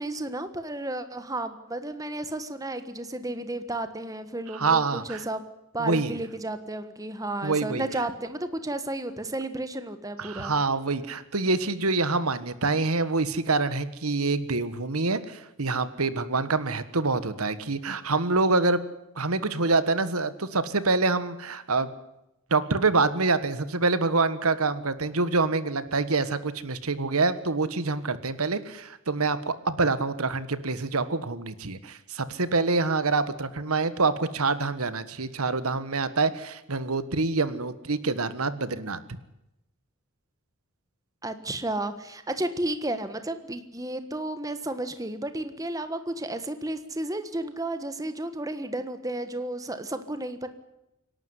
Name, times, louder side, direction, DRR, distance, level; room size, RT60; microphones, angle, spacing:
voice 1, 0.0-5.4 5.7-10.5 41.2-50.5, right 1 dB, 15° right, 10 dB, 1.4 m, -32 dB
voice 2, 4.5-5.2 5.8-6.1 7.4-7.8 10.2-18.8 19.1-21.9 22.5-39.0, right 3 dB, 85° right, 13 dB, 1.5 m, -26 dB
26.5 x 12.0 x 9.8 m, 0.88 s
head